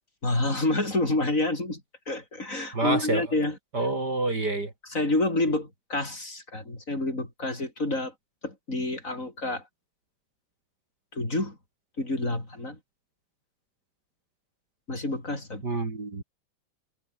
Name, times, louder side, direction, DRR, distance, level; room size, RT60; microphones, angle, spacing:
voice 1, 0.2-1.8 2.1-3.6 4.9-8.1 8.4-9.6 11.1-11.6 12.0-12.8 14.9-15.7, left 2 dB, 20° left, 7.2 m, -28 dB
voice 2, 2.7-3.3 3.7-4.7 15.6-16.2, right 2 dB, 30° right, 3.5 m, -27 dB
omnidirectional pair, 3.8 m